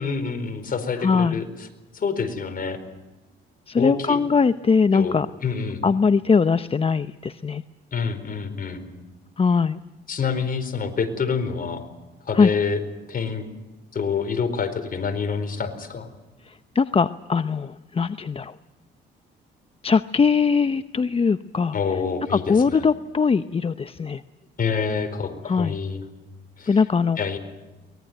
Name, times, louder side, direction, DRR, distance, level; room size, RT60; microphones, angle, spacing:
voice 1, 0.0-1.7 1.9-2.8 3.8-4.2 4.9-5.8 7.9-8.8 10.1-11.8 12.2-12.8 13.1-13.5 13.9-16.1 21.7-22.9 24.6-26.0 26.6-26.8 27.2-27.4, left 5 dB, 45° left, 7 dB, 4.5 m, -27 dB
voice 2, 1.0-1.4 3.7-5.3 5.8-7.6 9.4-9.8 12.4-12.5 16.5-18.6 19.8-21.7 22.5-24.2 25.4-25.8 26.7-27.2, left 5 dB, 30° left, 12 dB, 0.7 m, -21 dB
23.5 x 20.0 x 9.3 m, 1.1 s
cardioid pair, 90°, 20 cm